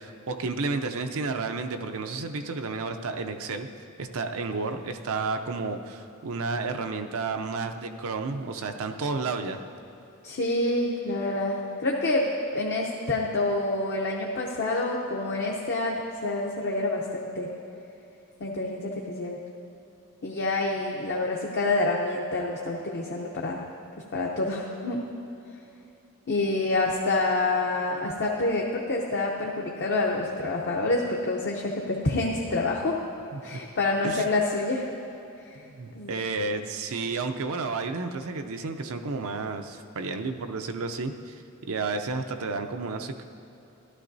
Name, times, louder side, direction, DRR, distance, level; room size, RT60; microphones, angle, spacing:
voice 1, 0.0-3.7 4.0-9.6 33.3-33.6 34.0-34.2 35.6-41.4 41.7-43.2, right 3 dB, 65° right, 6 dB, 0.6 m, -31 dB
voice 2, 10.2-12.2 12.5-17.5 18.4-19.4 20.2-23.6 24.1-25.0 26.3-33.0 33.4-34.9 35.9-36.2, left 2 dB, 50° left, -1 dB, 0.7 m, -27 dB
13.0 x 11.5 x 2.7 m, 2.9 s
head